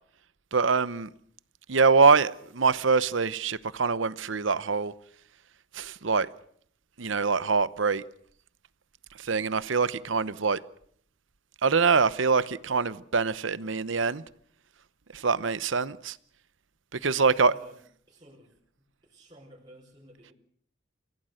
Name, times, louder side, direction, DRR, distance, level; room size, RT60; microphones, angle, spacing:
voice 1, 0.5-1.1 1.7-4.9 5.7-6.3 7.0-8.0 9.2-10.6 11.6-14.2 15.1-16.2 16.9-17.5, right 4 dB, 75° right, 0.9 m, -24 dB
voice 2, 17.3-17.8 18.1-18.6 19.0-20.3, right 1 dB, 20° right, 5.0 m, -52 dB
29.0 x 16.5 x 6.5 m
head